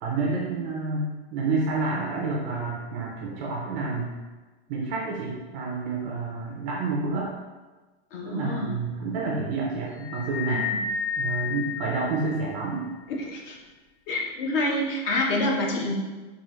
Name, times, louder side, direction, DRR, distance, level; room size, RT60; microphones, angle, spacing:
voice 1, 0.0-4.1 4.7-7.3 8.2-10.7 11.2-12.8, right 3 dB, 25° right, -3 dB, 0.4 m, -29 dB
voice 2, 8.1-8.8 10.5-10.8 13.2-13.6 14.1-15.9, left 1 dB, 60° left, -1 dB, 0.9 m, -27 dB
sound 1, 10.0-12.7, left 6 dB, 90° left, 0.5 m, -31 dB
4.7 x 2.3 x 3.0 m, 1.2 s
supercardioid pair, 165°, 32 cm